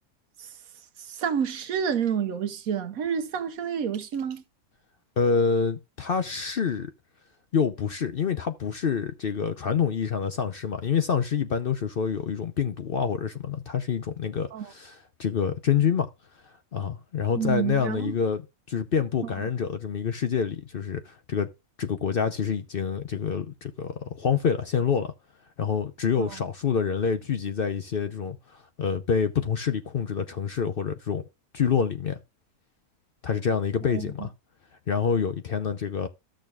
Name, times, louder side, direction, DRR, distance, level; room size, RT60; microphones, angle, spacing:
voice 1, 1.0-4.4 14.5-14.7 17.4-18.1 26.2-26.4 33.9-34.3, right 7 dB, 75° right, 1.3 m, -29 dB
voice 2, 5.2-6.9 7.5-16.1 16.7-21.5 21.8-25.1 25.6-28.4 28.8-31.2 31.5-32.2 33.2-34.3 34.9-36.1, left 6 dB, 55° left, 0.7 m, -27 dB
14.0 x 6.4 x 2.4 m
omnidirectional pair, 1.5 m